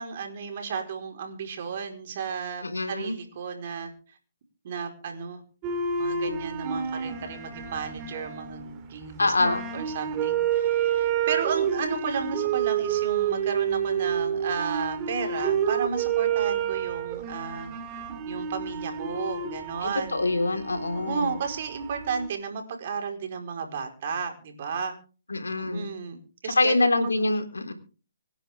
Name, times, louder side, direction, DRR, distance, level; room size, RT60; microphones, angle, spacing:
voice 1, 0.0-3.9 4.6-5.4 6.0-17.7 18.3-20.2 20.9-24.9 25.6-27.3, right 6 dB, 50° right, 4 dB, 4.7 m, -33 dB
voice 2, 2.6-3.2 9.2-9.6 19.8-21.4 25.3-25.9 26.4-27.7, left 2 dB, 90° left, 6 dB, 3.6 m, -25 dB
sound 1, 5.6-22.3, right 8 dB, 25° right, 2.5 m, -29 dB
26.0 x 10.0 x 3.7 m, 0.38 s
hypercardioid pair, 145°, 0 cm